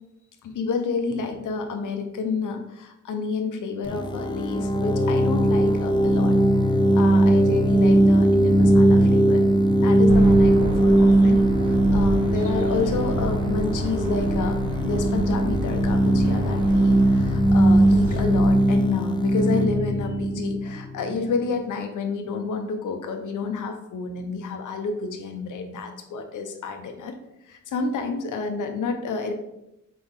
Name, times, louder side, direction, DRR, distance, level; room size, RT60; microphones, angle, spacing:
voice 1, 0.4-6.3 7.0-9.4 9.8-27.1 27.5-29.3, left 4 dB, 75° left, 5 dB, 1.1 m, -29 dB
sound 1, 3.9-21.4, right 1 dB, 15° left, 0.4 m, -19 dB
sound 2, 10.1-18.4, right 1 dB, 50° right, 2.0 m, -30 dB
6.2 x 4.7 x 3.7 m, 0.86 s
wide cardioid pair, 140°, 31 cm